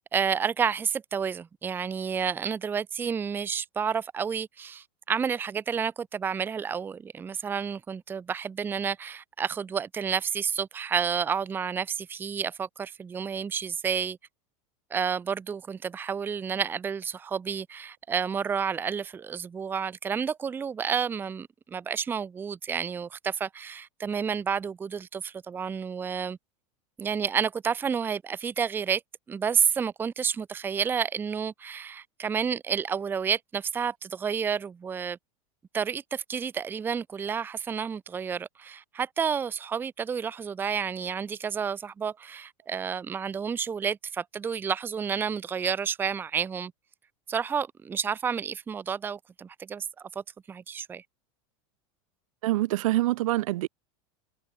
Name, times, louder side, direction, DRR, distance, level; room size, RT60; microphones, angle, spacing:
voice 1, 0.0-14.2 14.9-26.4 27.0-29.0 29.3-35.2 35.7-46.7 47.3-49.9 50.5-51.0, right 7 dB, 10° right, 0.7 m, -30 dB
voice 2, 52.4-53.7, right 17 dB, 80° right, 1.3 m, -25 dB
supercardioid pair, 160°, 17 cm